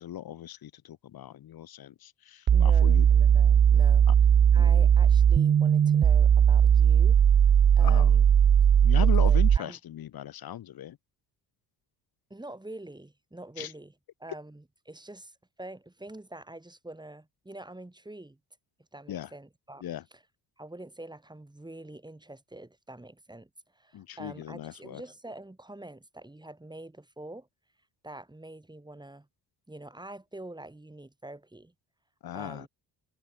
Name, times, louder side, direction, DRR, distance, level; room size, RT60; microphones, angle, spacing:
voice 1, 0.0-3.1 4.1-4.2 4.5-4.9 7.8-8.1 8.8-11.0 13.6-13.7 19.1-19.3 19.8-20.0 23.9-25.0 32.2-32.7, left 11 dB, 65° left, 2.0 m, -38 dB
voice 2, 2.5-4.1 4.5-7.2 7.8-8.2 9.0-9.8 12.3-13.9 14.2-18.4 18.9-19.8 20.6-27.5 28.0-29.3 29.7-31.7 32.3-32.7, right 1 dB, 10° right, 5.0 m, -45 dB
sound 1, 2.5-9.6, right 8 dB, 30° right, 0.5 m, -19 dB
supercardioid pair, 75°, 39 cm